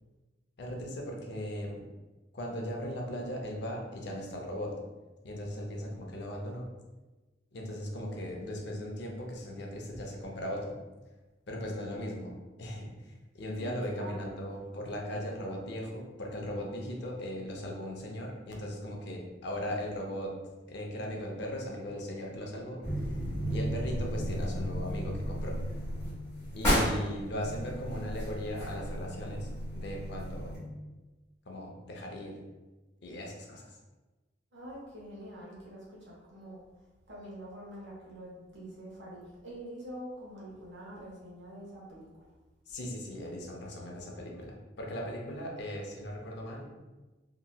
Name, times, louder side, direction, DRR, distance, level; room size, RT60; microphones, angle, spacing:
voice 1, 0.6-1.8 2.3-4.7 5.2-6.7 7.5-10.8 11.5-20.4 20.7-23.2 23.5-25.6 26.5-30.7 31.5-32.4 33.0-33.7 42.7-46.7, equal, 60° left, 0 dB, 0.5 m, -38 dB
voice 2, 13.6-14.5 34.5-36.6 37.1-42.1, right 1 dB, 70° right, -5 dB, 1.0 m, -45 dB
sound 1, 22.8-30.6, equal, 15° left, 1.2 m, -33 dB
3.0 x 2.7 x 2.2 m, 1.2 s
head